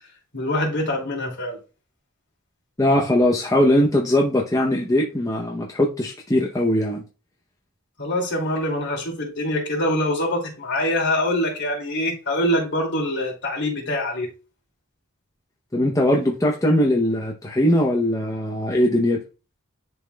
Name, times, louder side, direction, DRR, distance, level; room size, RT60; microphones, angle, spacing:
voice 1, 0.3-1.6 8.0-14.3, left 1 dB, 55° left, 2.5 m, -24 dB
voice 2, 2.8-7.0 15.7-19.2, left 1 dB, 15° left, 0.7 m, -20 dB
10.5 x 3.9 x 2.3 m
head